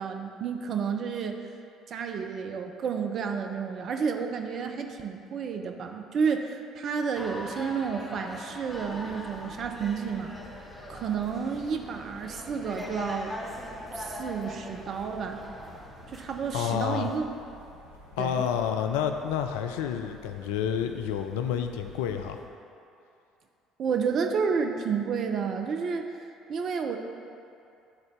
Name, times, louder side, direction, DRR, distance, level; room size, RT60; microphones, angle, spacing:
voice 1, 0.0-1.4 1.9-10.3 10.9-13.3 13.9-15.4 16.1-17.3 18.2-18.4 23.8-26.1 26.5-27.0, right 6 dB, 50° right, 4 dB, 0.6 m, -31 dB
sound 1, 7.2-17.2, left 1 dB, 5° left, 1.1 m, -42 dB
sound 2, 8.7-22.4, left 1 dB, 85° right, 0.9 m, -51 dB
voice 2, 16.5-17.1 18.2-22.4, left 8 dB, 70° left, 6 dB, 0.4 m, -29 dB
10.5 x 3.9 x 3.5 m, 2.6 s
figure-of-eight pair, 55°, 0 cm